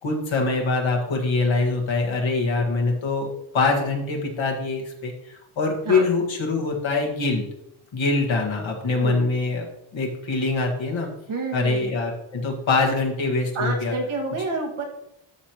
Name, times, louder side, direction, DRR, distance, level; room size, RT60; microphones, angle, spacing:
voice 1, 0.0-3.3 3.5-7.4 7.9-9.7 9.9-11.1 11.5-13.9, left 3 dB, 65° left, 1 dB, 1.9 m, -24 dB
voice 2, 9.0-9.4 11.3-11.9 13.5-14.8, right 3 dB, 80° right, 0 dB, 2.1 m, -28 dB
12.5 x 5.3 x 3.1 m, 0.82 s
wide cardioid pair, 140°, 49 cm